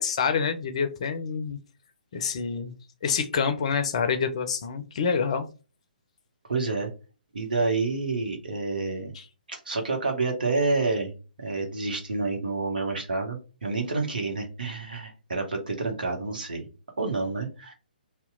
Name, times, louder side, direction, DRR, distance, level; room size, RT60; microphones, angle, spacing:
voice 1, 0.0-1.6 2.1-2.7 3.0-5.5 9.1-9.2, left 6 dB, 40° left, 9 dB, 0.5 m, -27 dB
voice 2, 6.5-6.9 7.3-9.1 9.5-16.7 17.0-17.7, right 3 dB, 60° right, 2 dB, 1.1 m, -28 dB
2.8 x 2.2 x 3.6 m, 0.33 s
figure-of-eight pair, 130°, 5 cm